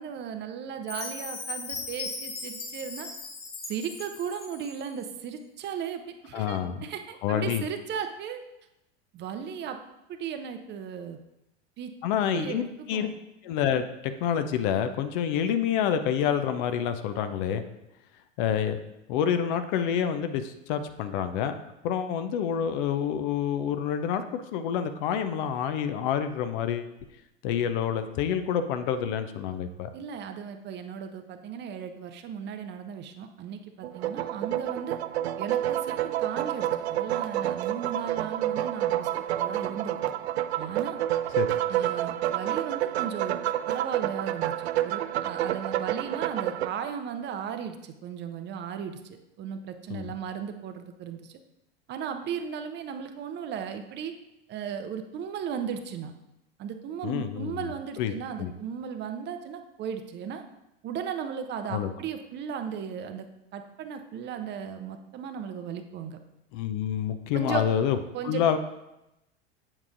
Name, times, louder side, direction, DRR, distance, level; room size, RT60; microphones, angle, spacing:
voice 1, 0.0-3.1 3.7-8.4 9.1-9.8 10.1-11.2 11.8-11.9 12.3-13.1 29.9-35.0 35.4-40.1 40.6-41.0 41.7-43.4 43.7-51.4 51.9-54.1 54.5-56.1 56.6-60.4 60.8-63.3 63.5-66.2 67.3-67.6 68.1-68.4, right 7 dB, 30° right, 7 dB, 0.7 m, -36 dB
Chime, 0.9-5.0, left 4 dB, 75° left, 1.1 m, -38 dB
voice 2, 6.3-6.8 7.2-7.6 12.0-12.6 12.9-13.1 13.4-13.8 14.2-17.6 18.4-18.8 19.1-21.5 21.8-26.9 27.4-29.9 41.4-41.5 49.9-50.0 57.0-57.7 58.0-58.5 61.7-61.9 66.5-68.0 68.2-68.6, left 8 dB, 50° left, 9 dB, 0.7 m, -27 dB
sound 1, 33.8-46.7, right 12 dB, 70° right, 0.5 m, -29 dB
8.2 x 7.2 x 2.6 m, 0.89 s
figure-of-eight pair, 85°, 34 cm